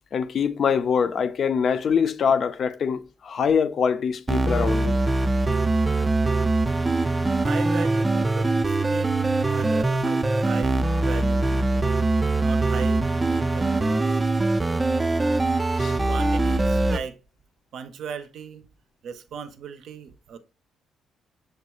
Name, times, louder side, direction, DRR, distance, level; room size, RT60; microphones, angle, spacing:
voice 1, 0.1-5.0 15.8-16.1, left 6 dB, 55° left, 0.4 m, -24 dB
sound 1, 4.3-17.0, right 2 dB, 20° right, 0.3 m, -22 dB
voice 2, 7.4-9.1 9.5-11.9 12.4-14.2 16.1-17.2 17.7-18.7 19.0-20.4, right 7 dB, 70° right, 0.5 m, -37 dB
6.4 x 2.3 x 2.9 m
cardioid pair, 85°, 0 cm